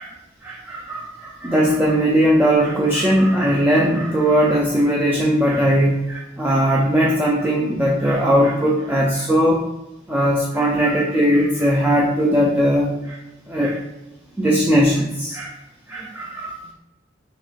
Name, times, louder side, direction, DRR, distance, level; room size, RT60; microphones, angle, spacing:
voice 1, 0.4-9.6 10.1-13.2 13.5-13.8 14.4-15.5 15.9-16.6, equal, 10° right, -4 dB, 0.3 m, -19 dB
4.1 x 2.8 x 2.3 m, 0.98 s
head